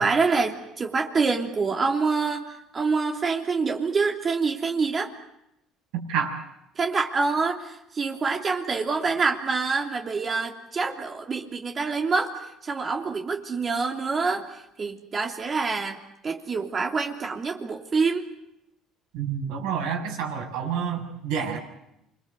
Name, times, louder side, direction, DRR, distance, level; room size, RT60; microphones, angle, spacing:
voice 1, 0.0-5.1 6.8-12.3 12.6-16.0 16.2-18.3, right 4 dB, 35° right, 2 dB, 3.2 m, -26 dB
voice 2, 5.9-6.4 19.1-21.6, right 7 dB, 80° right, 2 dB, 6.9 m, -28 dB
28.5 x 23.0 x 8.1 m, 0.84 s
supercardioid pair, 85°, 0 cm